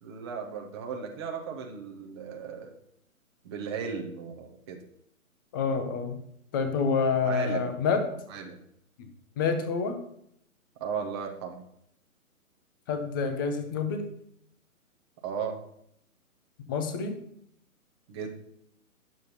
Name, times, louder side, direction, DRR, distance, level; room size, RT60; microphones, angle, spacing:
voice 1, 0.0-2.7 3.4-4.8 7.2-7.7 8.3-8.6 10.8-11.6 15.2-15.6 18.1-18.4, right 6 dB, 20° right, 2 dB, 0.7 m, -36 dB
voice 2, 5.5-6.2 6.5-8.0 9.4-10.0 12.9-14.0 16.7-17.2, left 5 dB, 15° left, 6 dB, 0.6 m, -27 dB
10.0 x 7.1 x 4.3 m, 0.72 s
figure-of-eight pair, 130°, 43 cm